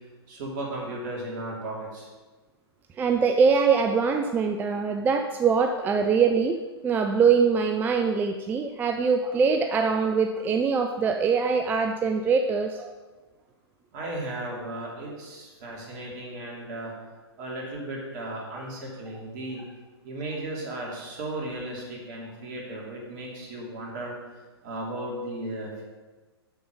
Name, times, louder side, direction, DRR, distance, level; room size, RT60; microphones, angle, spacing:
voice 1, 0.3-2.1 13.9-16.9 17.4-19.6 20.0-24.1 24.6-25.8, right 1 dB, 45° right, -2 dB, 2.8 m, -35 dB
voice 2, 3.0-12.9, right 5 dB, 15° right, 5 dB, 0.4 m, -23 dB
7.1 x 6.9 x 5.2 m, 1.3 s
figure-of-eight pair, 110°, 14 cm